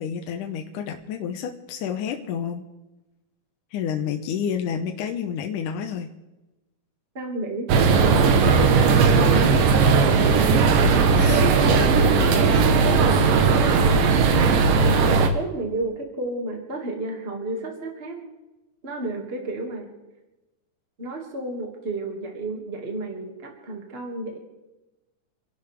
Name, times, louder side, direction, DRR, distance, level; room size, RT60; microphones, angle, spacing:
voice 1, 0.0-2.6 3.7-6.1 11.1-11.5 12.5-12.6, left 8 dB, 70° left, 4 dB, 2.2 m, -29 dB
voice 2, 7.1-7.7 8.0-9.5 10.3-10.8 11.7-14.0 15.2-18.2 18.8-19.9 21.0-24.4, right 2 dB, 20° right, 1 dB, 1.7 m, -32 dB
sound 1, 7.7-15.3, right 4 dB, 70° right, 2.6 m, -17 dB
29.0 x 12.0 x 3.5 m, 1.1 s
omnidirectional pair, 4.2 m